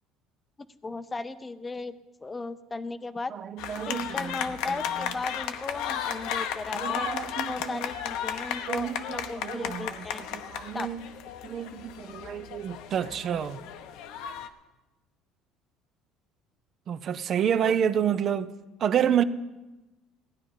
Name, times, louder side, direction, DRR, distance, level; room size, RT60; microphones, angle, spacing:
voice 1, 0.8-3.3 3.9-7.1 7.5-10.2 10.7-10.9 17.6-17.8, left 3 dB, 15° left, 0.6 m, -36 dB
voice 2, 3.5-4.4 6.8-7.8 8.7-9.9 10.3-11.0 11.4-13.6 16.9-18.5 18.8-19.2, right 9 dB, 40° right, 0.5 m, -29 dB
sound 1, 3.6-14.5, left 9 dB, 80° left, 0.9 m, -34 dB
16.0 x 10.0 x 5.6 m
cardioid pair, 135°, 0 cm